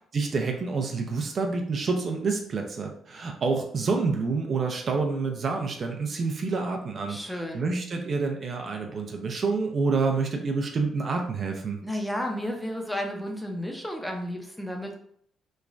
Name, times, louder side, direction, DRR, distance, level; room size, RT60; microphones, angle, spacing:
voice 1, 0.1-11.8, right 4 dB, 50° right, 2 dB, 0.4 m, -28 dB
voice 2, 7.1-7.6 11.8-15.0, equal, 5° left, 2 dB, 0.6 m, -32 dB
3.1 x 2.2 x 2.5 m, 0.64 s
cardioid pair, 90°, 0 cm